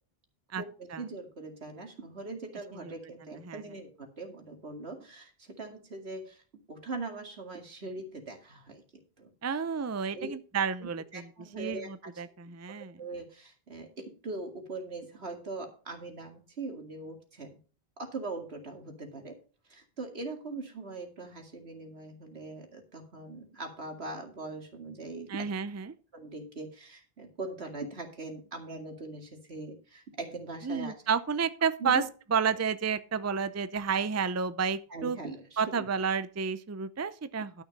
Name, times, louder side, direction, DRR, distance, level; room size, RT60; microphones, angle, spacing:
voice 1, 0.6-6.4 6.7-8.8 9.2-9.3 10.1-10.3 10.8-12.1 12.7-17.6 18.0-19.4 19.7-25.5 26.1-30.9 31.8-32.0 34.9-35.9, right 3 dB, 80° right, 4 dB, 2.5 m, -41 dB
voice 2, 9.4-11.3 11.6-13.0 25.3-25.9 30.6-32.0 32.3-35.2 35.6-37.6, right 6 dB, 20° right, 14 dB, 0.4 m, -31 dB
12.0 x 6.3 x 5.3 m, 0.37 s
omnidirectional pair, 1.1 m